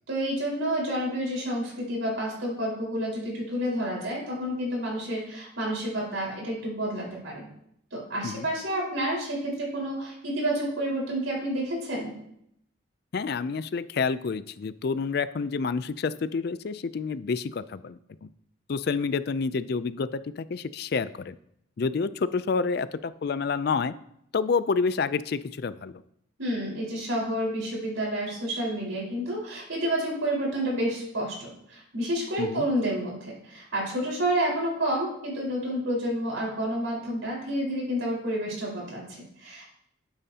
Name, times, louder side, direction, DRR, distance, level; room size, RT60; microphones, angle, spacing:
voice 1, 0.1-7.5 7.9-12.1 26.4-39.7, right 1 dB, 75° right, -3 dB, 4.6 m, -29 dB
voice 2, 13.1-18.3 18.7-21.4 21.8-23.9 24.3-26.0 32.4-32.7, left 5 dB, 50° left, 15 dB, 0.4 m, -28 dB
12.5 x 8.9 x 2.8 m, 0.73 s
head